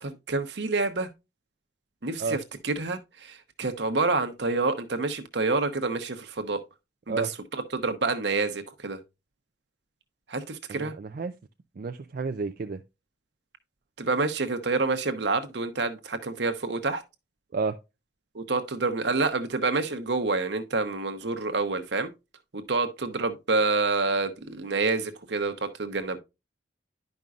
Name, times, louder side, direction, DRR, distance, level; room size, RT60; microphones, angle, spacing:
voice 1, 0.0-1.1 2.0-2.4 2.6-6.6 7.1-9.0 10.3-10.9 14.0-17.0 18.3-22.1 22.5-26.2, right 3 dB, 70° right, 0.9 m, -28 dB
voice 2, 10.7-11.3 11.8-12.8 17.5-17.8, right 4 dB, 50° right, 0.4 m, -30 dB
10.5 x 5.3 x 2.4 m
head